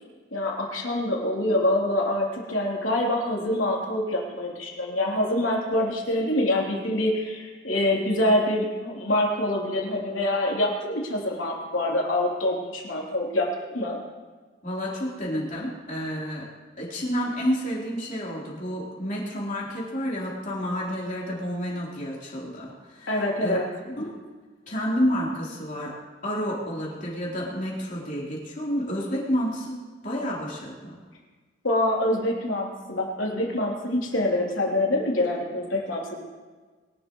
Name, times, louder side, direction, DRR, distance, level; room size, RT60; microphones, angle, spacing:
voice 1, 0.3-14.0 23.1-23.6 31.6-36.3, left 1 dB, 90° left, -2 dB, 3.3 m, -25 dB
voice 2, 14.6-16.5 16.8-23.6 24.0-24.1 24.7-25.9 26.2-29.8 30.0-31.0, equal, 40° left, -5 dB, 3.8 m, -30 dB
23.0 x 12.0 x 3.2 m, 1.4 s
head